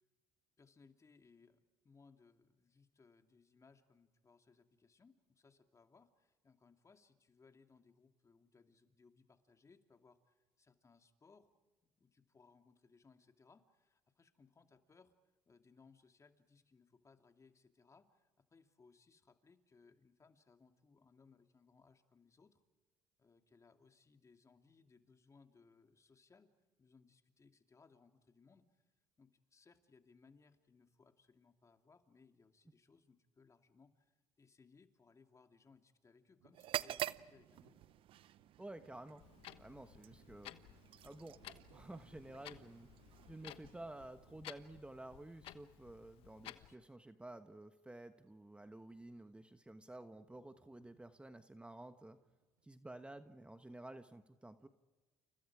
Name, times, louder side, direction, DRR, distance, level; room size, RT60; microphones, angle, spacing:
voice 1, 0.6-11.5 11.8-15.1 15.5-22.6 23.2-26.5 26.8-28.8 29.2-37.8 46.5-46.9, left 4 dB, 30° left, 6 dB, 2.7 m, -67 dB
sound 1, 36.4-46.2 46.8-46.9 47.6-47.8 48.1-48.3 49.0-49.5 49.8-53.2, right 9 dB, 85° right, 2.0 m, -73 dB
sound 2, 36.5-44.4, right 13 dB, 60° right, 0.7 m, -48 dB
voice 2, 38.6-39.2 39.6-40.7 41.0-41.4 41.7-42.9 43.3-52.2 52.6-54.7, right 1 dB, 10° right, 9 dB, 1.3 m, -52 dB
Clock, 39.2-46.7, left 13 dB, 70° left, 1.2 m, -56 dB
30.0 x 29.5 x 5.0 m, 1.2 s
supercardioid pair, 75°, 10 cm